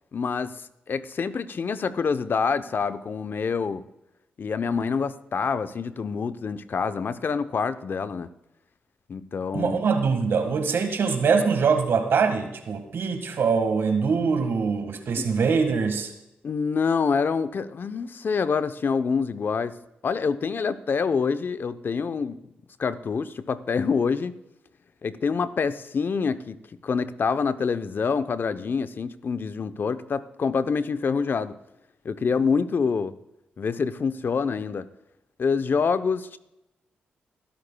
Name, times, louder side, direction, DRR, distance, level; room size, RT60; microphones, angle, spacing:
voice 1, 0.1-3.8 4.4-8.3 9.1-9.8 15.2-15.3 16.4-19.7 20.0-22.4 22.8-24.4 25.0-26.6 26.8-31.6 32.0-33.1 33.6-34.9 35.4-36.4, left 5 dB, 55° left, 12 dB, 0.7 m, -26 dB
voice 2, 9.5-16.1, right 5 dB, 70° right, 7 dB, 1.7 m, -23 dB
20.5 x 11.5 x 2.3 m, 0.88 s
supercardioid pair, 45°, 4 cm